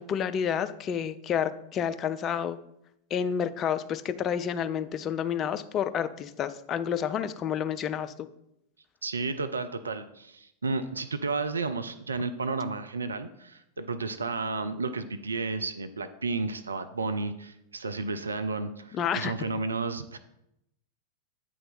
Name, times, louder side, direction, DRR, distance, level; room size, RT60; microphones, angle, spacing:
voice 1, 0.0-2.6 3.1-8.1 19.0-19.3, left 8 dB, 30° left, 11 dB, 0.3 m, -29 dB
voice 2, 9.0-20.2, right 3 dB, 75° right, 11 dB, 0.3 m, -32 dB
8.7 x 3.3 x 3.9 m, 0.82 s
figure-of-eight pair, 90°, 0 cm